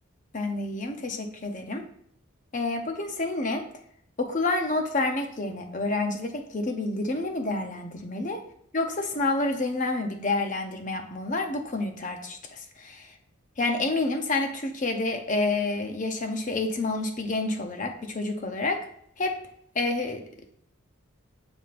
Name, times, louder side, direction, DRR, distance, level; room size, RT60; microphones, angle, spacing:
voice 1, 0.3-1.8 2.5-3.7 4.2-8.4 8.7-13.1 13.6-18.8 19.2-19.4 19.7-20.2, left 2 dB, 35° left, 5 dB, 0.7 m, -29 dB
6.9 x 5.7 x 2.5 m, 0.66 s
head